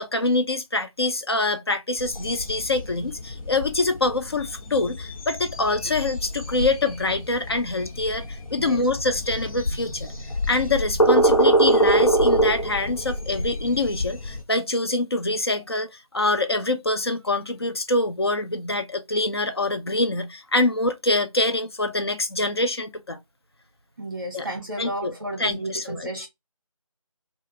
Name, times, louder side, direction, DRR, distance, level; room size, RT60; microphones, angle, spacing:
voice 1, 0.0-10.1 10.5-23.2 24.3-24.5 24.8-25.1 25.4-26.1, left 2 dB, 45° left, 0.4 m, -25 dB
sound 1, 2.0-14.4, right 1 dB, 70° left, 0.9 m, -25 dB
voice 2, 8.6-8.9 24.0-26.3, right 1 dB, 35° right, 0.7 m, -33 dB
2.4 x 2.4 x 2.7 m
figure-of-eight pair, 165°, 18 cm